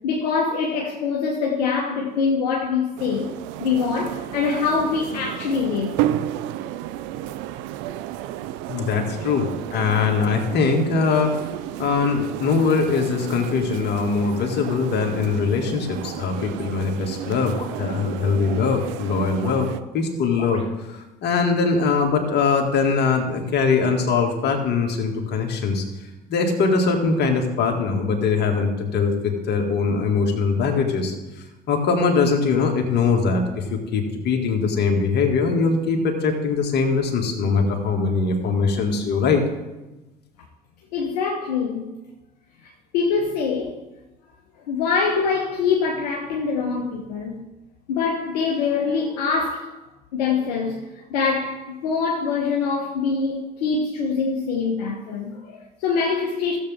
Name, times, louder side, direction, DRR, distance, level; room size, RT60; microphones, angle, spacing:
voice 1, 0.0-3.3 3.6-6.0 40.9-41.9 42.6-43.8 44.7-47.4 47.9-49.8 50.1-56.6, left 5 dB, 75° left, 1.1 m, -24 dB
sound 1, 3.0-19.8, right 12 dB, 60° right, 0.6 m, -32 dB
voice 2, 8.7-9.5 9.7-11.3 11.8-20.6 20.9-25.8 26.3-31.1 31.7-39.4, left 4 dB, 50° left, 2.2 m, -22 dB
sound 2, 17.6-18.6 19.3-19.7 20.3-20.7, left 3 dB, 30° left, 2.4 m, -40 dB
15.5 x 7.6 x 3.7 m
hypercardioid pair, 60°, 21 cm